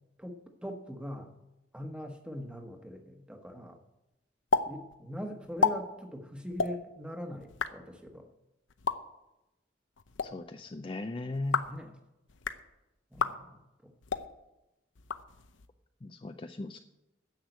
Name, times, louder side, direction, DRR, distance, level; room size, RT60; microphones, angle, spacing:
voice 1, 0.2-1.3 1.7-3.8 4.7-8.3 11.6-12.0 13.1-13.9, equal, 5° right, 4 dB, 1.2 m, -42 dB
sound 1, 4.5-4.7 4.9-5.0 5.4-5.7 6.5-6.7 7.4-7.7 8.7-9.0 10.0-10.3 11.3-11.8 12.3-12.6 13.1-13.3 14.0-14.3 15.0-15.7, left 4 dB, 80° left, 0.7 m, -30 dB
voice 2, 10.3-11.7 16.0-16.8, left 2 dB, 25° left, 7 dB, 0.4 m, -37 dB
10.0 x 7.9 x 7.9 m, 0.95 s
head